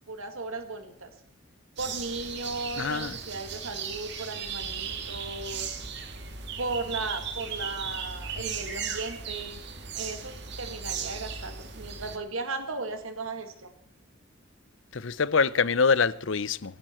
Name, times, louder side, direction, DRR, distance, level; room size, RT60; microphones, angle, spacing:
voice 1, 0.1-1.1 1.8-5.8 6.6-9.6 9.9-13.7, right 3 dB, 75° right, 1.9 m, -36 dB
sound 1, 1.8-12.2, right 6 dB, 55° right, 2.3 m, -36 dB
voice 2, 2.8-3.1 14.9-16.8, left 5 dB, 65° left, 0.7 m, -25 dB
25.0 x 11.5 x 4.4 m
head